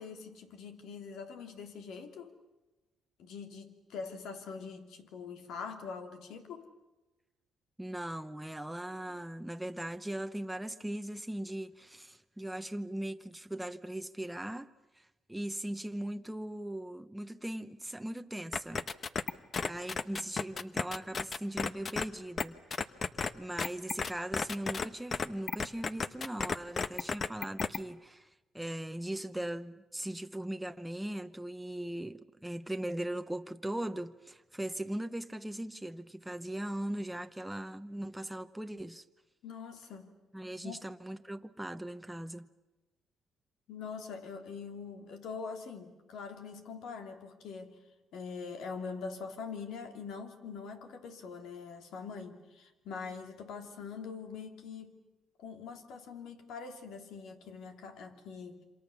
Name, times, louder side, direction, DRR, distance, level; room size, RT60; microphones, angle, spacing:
voice 1, 0.0-2.3 3.2-6.7 9.1-9.2 39.4-40.1 40.6-40.8 43.7-47.8 48.1-54.9 55.4-58.6, left 5 dB, 80° left, 2.9 m, -43 dB
voice 2, 7.8-14.7 14.9-18.9 19.7-22.6 23.3-28.3 28.5-39.0 40.3-42.5, right 1 dB, 5° right, 0.9 m, -39 dB
sound 1, 18.5-22.0 22.4-22.5 22.7-23.3 23.6-24.9 25.1-27.8, left 5 dB, 45° left, 1.0 m, -33 dB
27.5 x 26.0 x 7.1 m
cardioid pair, 90°, 0 cm